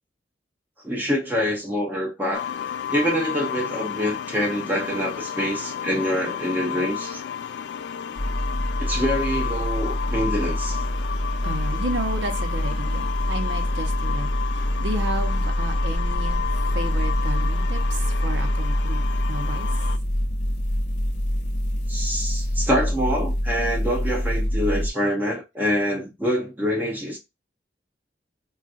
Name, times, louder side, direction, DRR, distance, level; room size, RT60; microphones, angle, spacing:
voice 1, 0.8-2.5 2.9-7.2 8.8-10.8 21.9-27.2, equal, 10° right, 0.6 m, -25 dB
sound 1, 2.3-20.0, left 8 dB, 70° left, 0.3 m, -32 dB
sound 2, 8.2-24.9, equal, 45° left, 0.7 m, -25 dB
voice 2, 11.4-19.0 19.3-19.7, right 1 dB, 85° right, 0.8 m, -32 dB
3.9 x 2.4 x 2.4 m
head